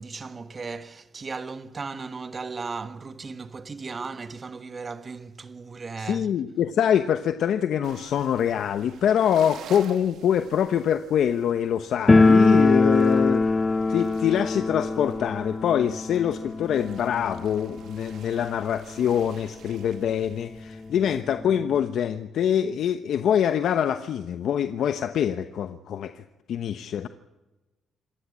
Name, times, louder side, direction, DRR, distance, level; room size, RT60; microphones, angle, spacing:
voice 1, 0.0-6.3, right 4 dB, 35° right, 1.6 m, -36 dB
voice 2, 6.0-13.6 13.9-26.2 26.5-27.1, left 9 dB, 70° left, 1.0 m, -24 dB
sound 1, 7.8-21.3, right 8 dB, 75° right, 2.3 m, -50 dB
sound 2, 12.1-18.8 19.0-19.1 19.4-19.5 20.2-20.3 20.6-21.8, left 3 dB, 25° left, 0.7 m, -22 dB
27.0 x 14.5 x 8.7 m
cardioid pair, 90°, 0 cm